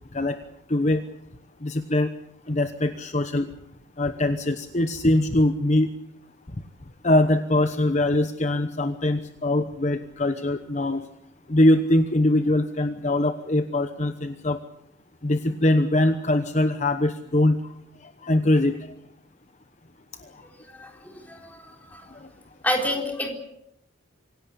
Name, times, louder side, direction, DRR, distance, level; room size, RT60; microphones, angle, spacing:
voice 1, 0.7-1.0 1.6-2.1 2.5-3.5 4.0-5.9 7.0-11.0 11.5-14.6 15.2-17.6 18.2-18.8 22.2-22.3, left 1 dB, 35° left, 9 dB, 1.0 m, -22 dB
voice 2, 20.7-22.1 22.6-23.3, left 1 dB, 10° left, 2 dB, 4.0 m, -29 dB
26.0 x 17.0 x 8.3 m, 0.80 s
head